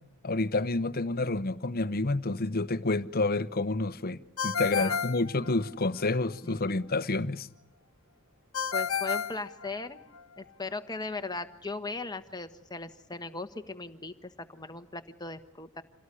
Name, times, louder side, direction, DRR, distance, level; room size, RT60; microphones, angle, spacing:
voice 1, 0.2-4.2 4.4-7.5, left 2 dB, 45° left, 0.9 m, -29 dB
Ringtone, 4.4-6.0 8.5-10.2, left 7 dB, 65° left, 1.3 m, -32 dB
voice 2, 8.7-10.0 10.4-15.8, left 3 dB, 20° left, 1.3 m, -38 dB
27.5 x 18.0 x 9.9 m
head